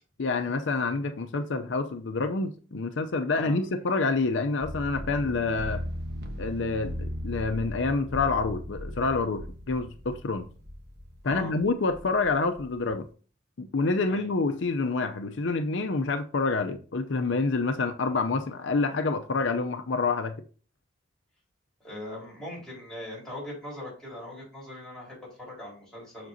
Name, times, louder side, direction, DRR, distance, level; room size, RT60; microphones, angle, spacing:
voice 1, 0.2-5.8 6.4-10.5 11.2-13.1 13.6-20.3, left 3 dB, 70° left, 0.6 m, -27 dB
sound 1, 4.6-13.0, equal, 55° right, 1.3 m, -38 dB
voice 2, 21.8-26.3, left 1 dB, 5° left, 4.3 m, -40 dB
7.6 x 6.8 x 2.7 m
head